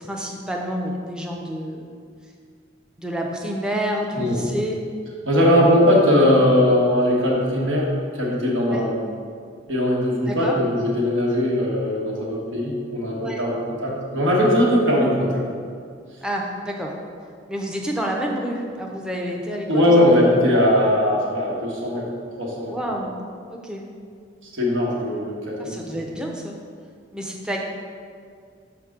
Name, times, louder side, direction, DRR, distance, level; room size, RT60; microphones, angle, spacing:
voice 1, 0.0-1.9 3.0-4.8 8.7-8.8 10.3-10.6 13.2-13.4 16.2-16.9 17.5-19.9 22.7-23.1 23.5-23.8 25.6-26.6 27.1-27.6, equal, 5° right, -1 dB, 0.4 m, -28 dB
voice 2, 5.2-8.9 9.7-15.4 19.7-22.1 22.4-22.8 24.4-25.8, left 1 dB, 90° right, -4 dB, 1.4 m, -20 dB
5.8 x 5.1 x 3.6 m, 2.2 s
head